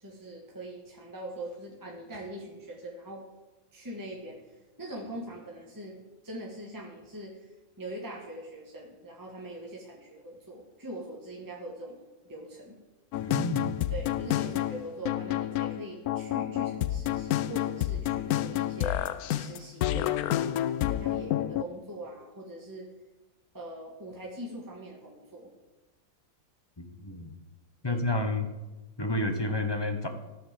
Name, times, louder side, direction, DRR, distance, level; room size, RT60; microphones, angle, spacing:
voice 1, 0.0-3.2 3.7-4.4 4.8-6.0 6.2-7.5 7.8-12.0 12.2-12.8 13.9-19.0 19.3-22.9 23.5-25.5 27.8-28.1, right 1 dB, 15° right, -2 dB, 1.6 m, -42 dB
sound 1, 13.1-21.6, left 13 dB, 75° left, 1.0 m, -29 dB
voice 2, 13.2-13.9 26.8-27.3 27.8-28.5 29.0-30.1, left 2 dB, 20° left, 6 dB, 0.8 m, -30 dB
14.0 x 5.9 x 7.5 m, 1.1 s
omnidirectional pair, 1.7 m